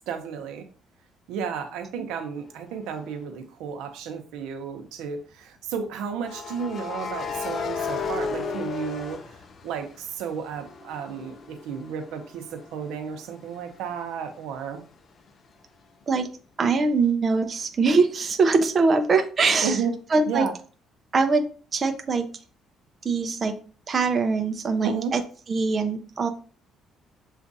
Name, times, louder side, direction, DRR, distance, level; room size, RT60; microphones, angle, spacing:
voice 1, 0.1-0.7 1.3-9.2 9.6-14.8 19.6-19.9 20.3-20.5 24.8-25.1, right 6 dB, 85° right, 6 dB, 0.7 m, -32 dB
sound 1, 2.9-3.1 6.2-10.1 10.5-14.1, left 5 dB, 45° left, 0.5 m, -34 dB
voice 2, 16.6-19.8 20.1-20.5 21.1-21.4 21.7-22.3 23.0-23.5 23.9-25.2 25.5-26.3, right 4 dB, 35° right, 7 dB, 0.5 m, -22 dB
7.0 x 2.5 x 2.6 m, 0.40 s
cardioid pair, 110°, 0 cm